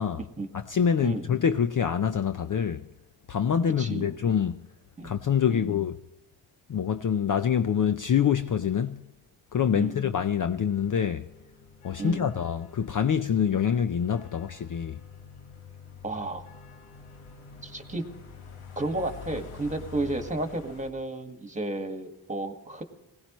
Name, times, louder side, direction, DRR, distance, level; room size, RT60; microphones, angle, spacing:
voice 1, 0.5-2.9 3.3-4.6 5.0-6.0 6.7-9.1 9.5-11.3 11.8-15.0, left 8 dB, 40° left, 0.6 m, -26 dB
voice 2, 3.8-4.1 5.0-5.1 5.5-5.7 9.7-10.0 12.0-12.3 16.0-16.4 17.6-18.0 18.8-22.8, right 2 dB, 15° right, 1.8 m, -32 dB
sound 1, 10.7-20.9, left 6 dB, 85° left, 1.6 m, -47 dB
20.0 x 17.5 x 3.1 m
cardioid pair, 70°, 48 cm